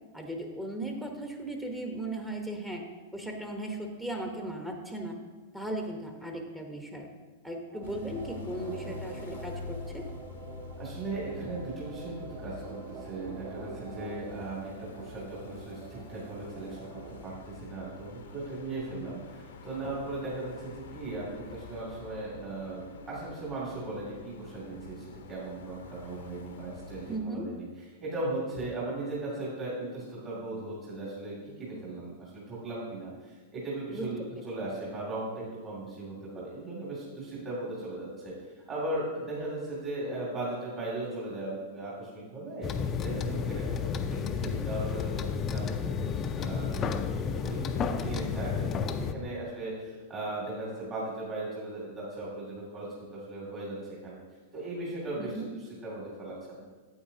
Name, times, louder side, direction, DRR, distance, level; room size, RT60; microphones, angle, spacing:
voice 1, 0.1-2.8 3.1-5.2 5.5-7.1 7.4-10.1 27.1-27.5 33.9-34.1 55.2-55.5, right 1 dB, 10° right, 2 dB, 1.0 m, -37 dB
sound 1, 7.7-17.2, right 6 dB, 50° right, 0.7 m, -46 dB
sound 2, 7.8-27.2, left 4 dB, 80° left, 0.8 m, -47 dB
voice 2, 10.8-16.9 17.2-38.3 38.7-43.9 44.1-53.8 54.0-54.2 54.5-56.7, right 2 dB, 35° right, -7 dB, 2.6 m, -38 dB
sound 3, 42.6-49.1, left 6 dB, 30° left, 0.5 m, -31 dB
8.6 x 8.4 x 2.8 m, 1.4 s
hypercardioid pair, 110°, 0 cm